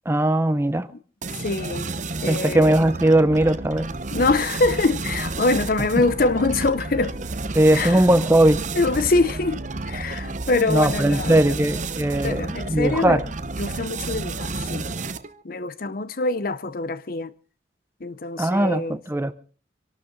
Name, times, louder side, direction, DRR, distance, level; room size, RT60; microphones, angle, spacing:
voice 1, 0.1-0.9 2.3-3.9 5.9-6.0 7.5-8.6 10.7-13.2 18.4-19.3, right 1 dB, 15° right, 0.6 m, -19 dB
sound 1, 1.2-15.4, right 3 dB, 40° right, 0.8 m, -32 dB
voice 2, 1.4-1.9 2.2-2.7 4.1-7.2 7.7-8.1 8.7-11.6 12.2-13.2 13.6-14.9 15.4-17.3 18.0-19.0, left 3 dB, 50° left, 0.7 m, -24 dB
sound 2, 3.4-14.6, right 1 dB, 60° right, 2.0 m, -38 dB
25.5 x 12.0 x 3.9 m
head